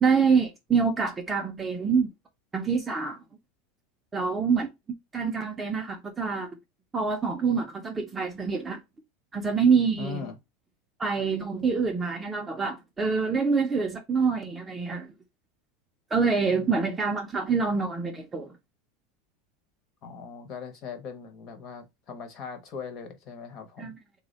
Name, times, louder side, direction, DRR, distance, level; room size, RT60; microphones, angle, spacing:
voice 1, 0.0-2.1 2.5-3.2 4.1-4.7 5.1-6.5 6.9-8.8 9.3-10.2 11.0-15.1 16.1-18.5 23.8-23.9, right 5 dB, 10° right, 0.3 m, -26 dB
voice 2, 10.0-10.4 16.5-16.8 20.0-23.9, left 6 dB, 30° left, 0.6 m, -40 dB
3.3 x 2.1 x 3.6 m
supercardioid pair, 180°, 0 cm